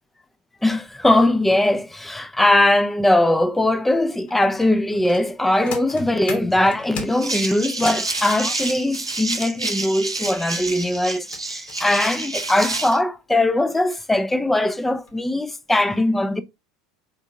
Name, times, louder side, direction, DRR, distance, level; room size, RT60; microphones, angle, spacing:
voice 1, 0.6-16.4, left 1 dB, 5° left, 0.5 m, -20 dB
sound 1, 4.3-8.1 10.6-13.0 13.7-13.8 14.3-14.5 14.9-15.2 15.5-15.6, left 5 dB, 45° left, 1.1 m, -38 dB
sound 2, 7.1-13.0, right 2 dB, 85° right, 0.6 m, -28 dB
5.1 x 3.6 x 2.6 m
figure-of-eight pair, 75°, 3 cm